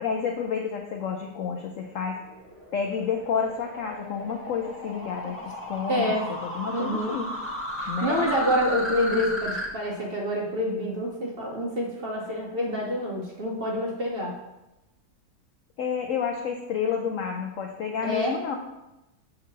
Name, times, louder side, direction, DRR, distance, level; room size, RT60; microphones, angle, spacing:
voice 1, 0.0-2.3 2.7-7.3 7.9-8.3 15.8-18.6, left 6 dB, 75° left, 3 dB, 0.7 m, -30 dB
sound 1, 1.6-9.7, equal, 15° left, 0.5 m, -35 dB
voice 2, 5.9-6.3 6.7-7.2 7.8-14.4 18.0-18.4, equal, 45° right, -2 dB, 0.8 m, -27 dB
7.0 x 3.8 x 4.5 m, 0.97 s
omnidirectional pair, 1.9 m